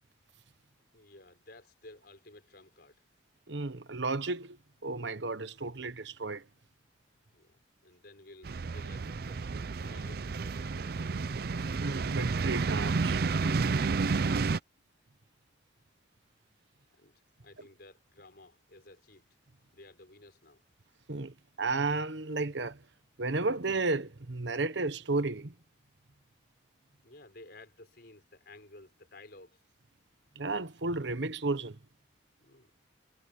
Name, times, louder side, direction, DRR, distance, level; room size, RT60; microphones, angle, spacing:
voice 1, 0.9-3.0 7.3-9.4 9.8-11.3 16.9-19.3 19.7-20.6 27.0-29.6 32.4-32.7, left 2 dB, 55° left, 5.4 m, -54 dB
voice 2, 3.5-6.5 11.8-13.2 21.1-22.8 23.2-25.5 30.3-31.8, right 3 dB, 70° right, 1.1 m, -33 dB
sound 1, 8.4-14.6, right 4 dB, 55° right, 0.5 m, -31 dB
head